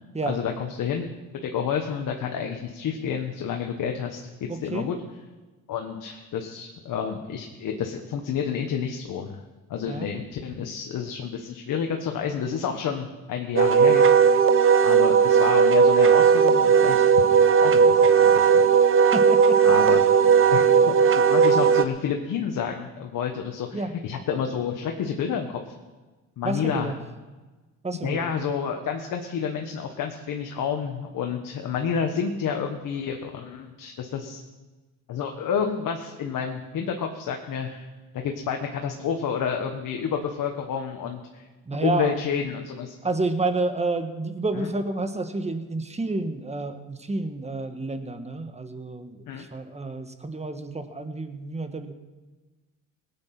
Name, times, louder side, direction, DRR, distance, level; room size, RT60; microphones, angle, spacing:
voice 1, 0.2-1.1 1.4-4.2 4.6-5.0 5.7-9.4 9.7-14.4 14.8-17.2 17.6-18.6 19.6-25.7 26.4-26.9 28.0-34.4 35.1-37.9 38.1-41.5 41.8-43.0 44.5-44.7 49.3-49.5, left 7 dB, 65° left, 3 dB, 1.4 m, -29 dB
voice 2, 4.5-4.9 9.9-10.1 19.1-19.6 19.9-20.0 23.7-23.9 26.4-26.9 27.8-28.3 41.6-42.1 43.0-51.9, right 3 dB, 20° right, 8 dB, 1.5 m, -29 dB
Wind instrument woodwind instrument, 13.6-21.8, right 6 dB, 35° right, 0.8 m, -17 dB
18.5 x 9.0 x 6.0 m, 1.2 s
cardioid pair, 85°, 34 cm